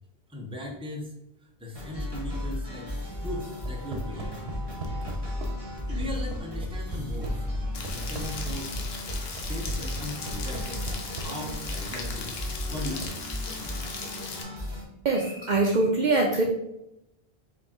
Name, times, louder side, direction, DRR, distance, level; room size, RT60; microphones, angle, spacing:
voice 1, 0.3-1.1 1.6-4.4 5.9-8.8 9.3-13.1, left 1 dB, 5° right, -1 dB, 0.7 m, -38 dB
sound 1, 1.7-14.8, left 1 dB, 25° right, 1.5 m, -35 dB
sound 2, 3.5-13.1, right 1 dB, 80° right, 1.0 m, -37 dB
Rain, 7.7-14.4, left 4 dB, 75° left, 1.0 m, -38 dB
voice 2, 15.0-16.4, right 2 dB, 55° right, 0 dB, 0.6 m, -23 dB
4.8 x 2.9 x 3.6 m, 0.85 s
omnidirectional pair, 1.0 m